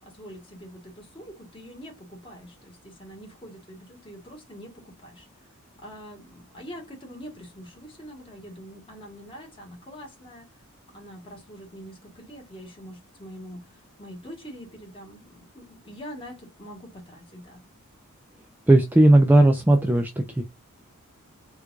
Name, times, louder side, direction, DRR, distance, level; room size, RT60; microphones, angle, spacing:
voice 1, 0.0-5.5 5.8-10.5 10.9-17.6, equal, 25° left, 1.4 m, -44 dB
voice 2, 18.7-20.4, right 1 dB, 10° right, 0.3 m, -17 dB
4.4 x 2.4 x 2.3 m
head